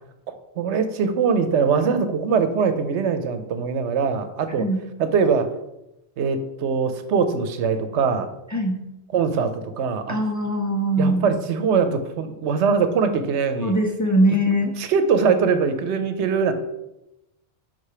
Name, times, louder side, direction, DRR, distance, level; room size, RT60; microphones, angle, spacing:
voice 1, 0.3-4.7 5.0-5.5 6.2-8.3 9.1-10.2 11.0-13.7 14.8-16.5, right 5 dB, 80° right, 9 dB, 0.9 m, -22 dB
voice 2, 8.5-8.8 10.1-11.3 13.6-14.7, right 1 dB, 25° left, 2 dB, 0.4 m, -21 dB
5.6 x 3.8 x 4.9 m, 0.91 s
omnidirectional pair, 1.2 m